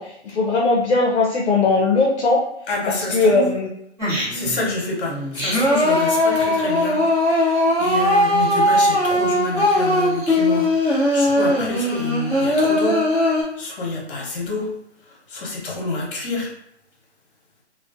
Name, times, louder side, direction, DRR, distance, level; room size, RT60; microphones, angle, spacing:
voice 1, 0.0-2.4 2.9-3.7, left 3 dB, 75° left, -2 dB, 0.6 m, -19 dB
voice 2, 2.7-3.5 4.3-7.0 7.3-14.7 15.1-16.5, left 2 dB, 50° left, -1 dB, 1.0 m, -28 dB
Singing, 4.0-4.6 5.1-13.4, left 1 dB, 10° right, 0.9 m, -19 dB
2.3 x 2.1 x 2.5 m, 0.75 s
hypercardioid pair, 135°, 34 cm